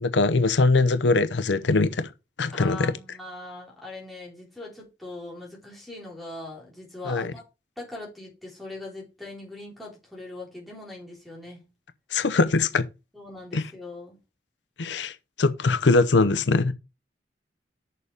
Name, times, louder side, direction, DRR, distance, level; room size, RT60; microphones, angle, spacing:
voice 1, 0.0-2.1 2.4-2.9 7.1-7.3 12.1-12.9 13.5-13.7 14.8-16.7, left 3 dB, 85° left, 0.7 m, -22 dB
voice 2, 2.5-7.4 7.8-11.6 13.1-14.2, left 2 dB, ahead, 3.9 m, -40 dB
6.9 x 6.8 x 4.9 m
head